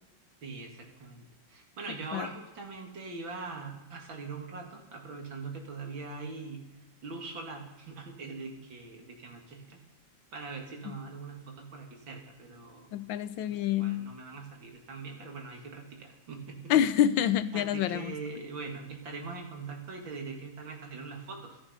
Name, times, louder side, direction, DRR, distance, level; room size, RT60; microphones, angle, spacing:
voice 1, 0.4-6.6 7.0-9.8 10.3-12.9 13.4-16.7 17.5-21.6, right 4 dB, 90° right, 2 dB, 2.9 m, -42 dB
voice 2, 12.9-14.1 16.7-18.1, left 10 dB, 85° left, 14 dB, 1.4 m, -27 dB
13.5 x 13.0 x 5.5 m, 0.96 s
omnidirectional pair, 2.1 m